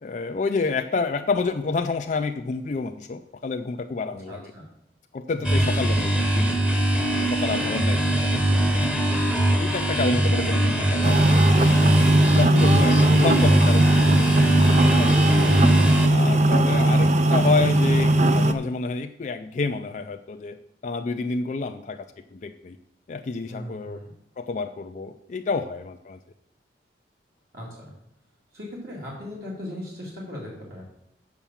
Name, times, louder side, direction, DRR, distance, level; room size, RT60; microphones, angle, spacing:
voice 1, 0.0-4.5 5.1-6.7 7.1-9.0 9.6-12.0 12.4-14.5 14.8-15.5 16.1-20.6 20.8-22.8 23.1-24.0 24.4-26.2, left 4 dB, 40° left, 6 dB, 0.4 m, -29 dB
voice 2, 4.0-4.7 5.3-5.7 10.2-10.5 23.4-24.1 27.5-27.9 28.5-30.8, left 1 dB, 60° right, -4 dB, 2.3 m, -38 dB
sound 1, 5.4-16.1, right 1 dB, 5° right, 1.0 m, -21 dB
sound 2, 11.0-18.5, right 1 dB, 40° right, 0.5 m, -19 dB
7.0 x 5.8 x 7.2 m, 0.79 s
head